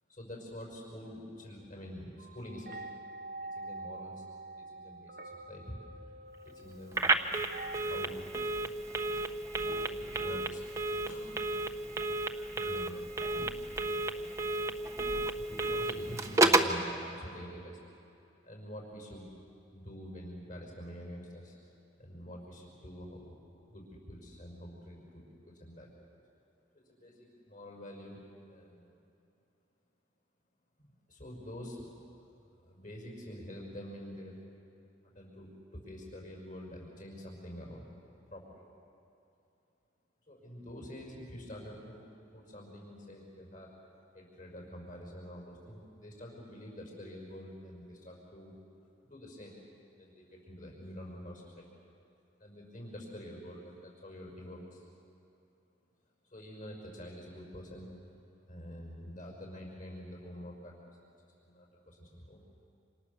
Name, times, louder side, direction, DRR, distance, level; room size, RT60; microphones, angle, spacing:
voice 1, 0.1-2.9 3.4-4.2 4.6-5.2 5.5-6.0 6.4-7.1 7.8-8.2 9.8-10.6 11.1-11.4 12.5-13.8 14.1-14.4 15.4-17.8 18.4-19.3 19.7-21.6 22.0-23.4 23.7-25.9 26.7-28.2 28.5-28.9 30.8-31.9 32.6-34.4 35.0-38.0 38.3-38.6 40.3-48.6 49.0-49.6 49.9-51.7 52.4-54.8 56.3-57.9 58.5-60.9 61.4-62.4, equal, 40° left, -1 dB, 5.7 m, -47 dB
sound 1, 2.2-7.8, right 2 dB, 50° right, 1.0 m, -46 dB
Telephone, 6.9-16.8, right 2 dB, 15° right, 1.1 m, -31 dB
28.5 x 27.0 x 7.1 m, 2.7 s
head